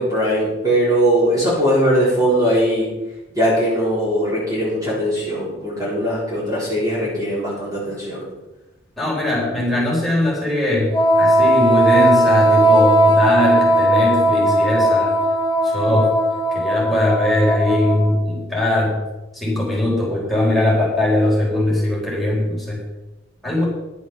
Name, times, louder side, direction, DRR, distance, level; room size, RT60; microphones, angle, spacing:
voice 1, 0.0-2.9 3.3-8.3, equal, 15° right, -7 dB, 4.0 m, -20 dB
voice 2, 9.0-15.1 15.6-16.2 16.5-19.0 19.3-22.8 23.4-23.6, left 1 dB, ahead, -5 dB, 4.5 m, -20 dB
Wind instrument woodwind instrument, 10.9-18.3, right 1 dB, 25° left, 1.3 m, -17 dB
11.0 x 8.0 x 6.9 m, 1.0 s
head